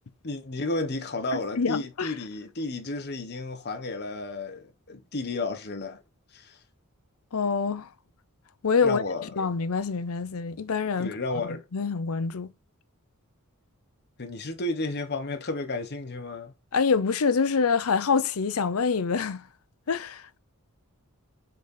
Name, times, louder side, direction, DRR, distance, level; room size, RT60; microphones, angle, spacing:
voice 1, 0.2-6.0 6.3-6.6 8.8-9.5 11.0-11.6 14.2-16.5, left 2 dB, 50° left, 1.1 m, -32 dB
voice 2, 1.3-2.1 7.3-7.9 8.6-9.0 9.4-11.1 11.7-12.5 16.7-19.4 19.9-20.2, left 5 dB, 75° left, 0.6 m, -26 dB
6.5 x 4.1 x 3.8 m
head